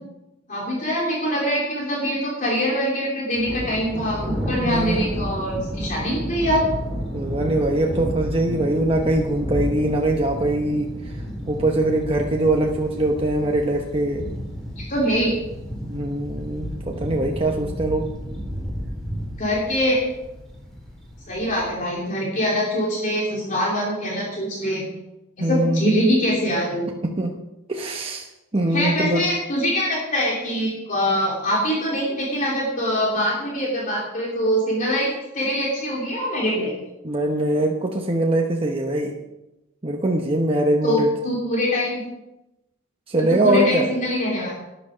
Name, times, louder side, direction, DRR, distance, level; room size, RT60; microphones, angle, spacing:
voice 1, 0.5-4.2 4.5-6.6 14.8-15.3 19.4-20.0 21.3-24.8 25.4-26.9 28.7-36.8 40.8-42.0 43.3-44.5, equal, 40° left, -4 dB, 3.1 m, -23 dB
Thunder, 3.4-21.8, equal, 5° left, 3.8 m, -32 dB
voice 2, 4.6-5.1 7.1-11.2 11.5-14.3 15.9-18.1 25.4-26.1 27.0-27.4 27.7-28.3 28.5-29.2 37.0-39.1 39.8-41.1 43.1-43.8, right 1 dB, 30° right, 0 dB, 1.0 m, -22 dB
12.5 x 10.0 x 5.2 m, 0.96 s
head